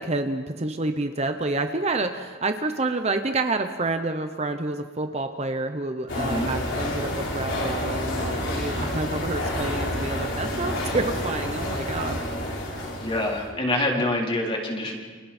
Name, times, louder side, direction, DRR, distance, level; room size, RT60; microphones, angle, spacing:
voice 1, 0.0-12.2, right 2 dB, 35° right, 7 dB, 0.9 m, -28 dB
sound 1, 6.1-13.5, left 1 dB, 65° left, 4.5 m, -29 dB
voice 2, 6.2-6.5 13.0-15.0, left 1 dB, 25° left, -1 dB, 4.1 m, -26 dB
30.0 x 28.0 x 4.4 m, 1.5 s
head